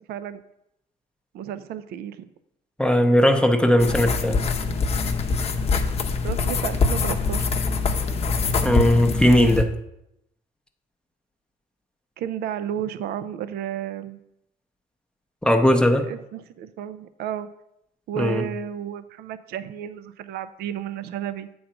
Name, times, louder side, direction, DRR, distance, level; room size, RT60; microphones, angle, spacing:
voice 1, 0.1-0.4 1.3-2.3 6.2-7.6 12.2-14.2 16.1-17.5 18.1-21.5, right 9 dB, 70° right, 13 dB, 0.4 m, -32 dB
voice 2, 2.8-4.4 8.6-9.7 15.4-16.1 18.2-18.4, left 1 dB, 5° left, 4 dB, 0.6 m, -18 dB
sound 1, 3.8-9.6, left 4 dB, 40° left, 0.7 m, -24 dB
7.7 x 3.9 x 5.7 m, 0.81 s
cardioid pair, 110°, 17 cm